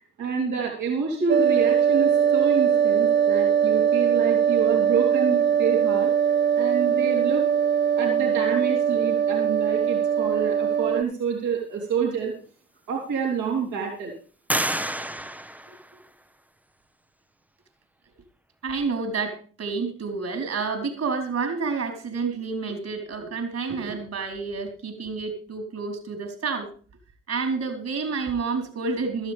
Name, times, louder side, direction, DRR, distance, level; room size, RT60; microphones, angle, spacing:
voice 1, 0.0-6.1 6.6-7.4 8.0-12.3 12.9-14.1, right 6 dB, 80° right, -1 dB, 3.7 m, -28 dB
sound 1, 1.3-11.0, right 8 dB, 35° right, 1.0 m, -21 dB
sound 2, 12.2-12.3 12.9-13.6 14.5-16.4, right 1 dB, 5° right, 0.8 m, -30 dB
voice 2, 18.6-26.7 27.3-29.3, right 4 dB, 60° right, 5 dB, 4.3 m, -29 dB
16.0 x 13.5 x 3.5 m, 0.38 s
hypercardioid pair, 40°, 29 cm